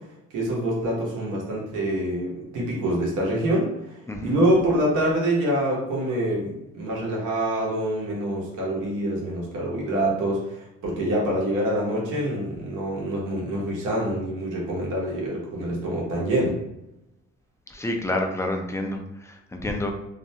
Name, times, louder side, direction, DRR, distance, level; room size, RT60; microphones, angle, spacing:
voice 1, 0.3-16.6, right 1 dB, 90° right, -4 dB, 0.9 m, -26 dB
voice 2, 17.7-19.9, left 1 dB, 10° left, 3 dB, 0.3 m, -29 dB
2.4 x 2.1 x 2.7 m, 0.88 s
cardioid pair, 90°, 30 cm